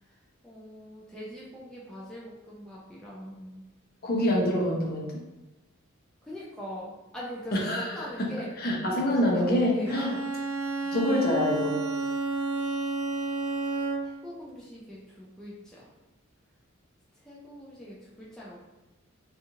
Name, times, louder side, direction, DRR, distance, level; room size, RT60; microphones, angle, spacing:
voice 1, 0.4-3.6 6.2-8.5 8.9-10.2 14.0-15.9 17.2-18.7, equal, 5° left, -7 dB, 0.4 m, -42 dB
voice 2, 4.0-5.2 7.5-8.3 8.6-10.1 10.9-11.8, left 1 dB, 45° left, -1 dB, 0.6 m, -26 dB
Bowed string instrument, 9.9-14.3, right 3 dB, 70° right, 0.3 m, -31 dB
2.7 x 2.4 x 2.8 m, 1.0 s
head